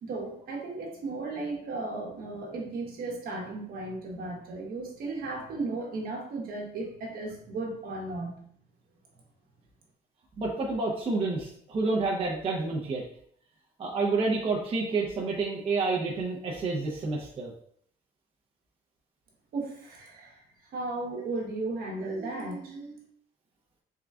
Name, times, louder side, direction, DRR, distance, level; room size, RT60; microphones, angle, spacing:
voice 1, 0.0-8.4 19.5-20.4 20.7-23.0, right 2 dB, 60° right, -1 dB, 1.1 m, -35 dB
voice 2, 10.4-13.0 13.8-17.5, right 3 dB, 35° right, -2 dB, 0.7 m, -29 dB
3.7 x 2.2 x 3.5 m, 0.63 s
cardioid pair, 110°, 17 cm